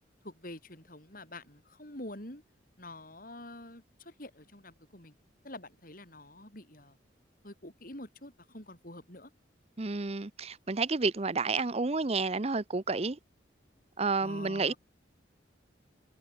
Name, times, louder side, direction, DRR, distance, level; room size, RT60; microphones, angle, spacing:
voice 1, 0.2-2.4 2.8-5.1 5.4-7.0 7.4-9.3 14.2-14.8, left 1 dB, 50° left, 6.9 m, -47 dB
voice 2, 9.8-13.2 14.0-14.7, right 4 dB, 35° right, 0.7 m, -30 dB
head